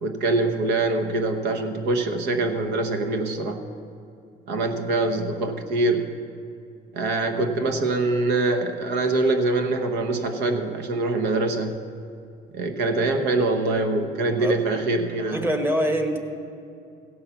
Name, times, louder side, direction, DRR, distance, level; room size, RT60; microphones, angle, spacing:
voice 1, 0.0-3.6 4.5-6.1 6.9-11.8 12.5-15.4, right 2 dB, 85° right, 6 dB, 1.0 m, -24 dB
voice 2, 15.3-16.2, equal, 15° right, 5 dB, 1.2 m, -24 dB
16.0 x 5.7 x 6.9 m, 2.6 s
cardioid pair, 110°, 17 cm